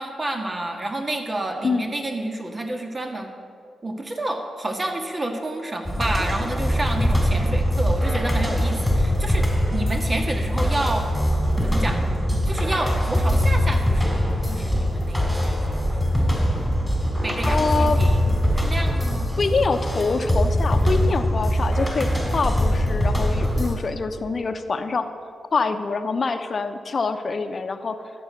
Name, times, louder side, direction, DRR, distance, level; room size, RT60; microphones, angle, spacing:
voice 1, 0.0-3.3 3.8-11.1 11.6-12.0 12.5-16.2 17.2-19.3, right 1 dB, 35° right, 4 dB, 1.9 m, -30 dB
voice 2, 1.6-1.9 17.5-18.0 19.4-25.1 25.5-28.0, left 4 dB, 50° left, 9 dB, 0.9 m, -25 dB
sound 1, 5.9-23.7, equal, 5° left, 3.2 m, -22 dB
12.0 x 8.6 x 6.6 m, 2.2 s
cardioid pair, 55°, 0 cm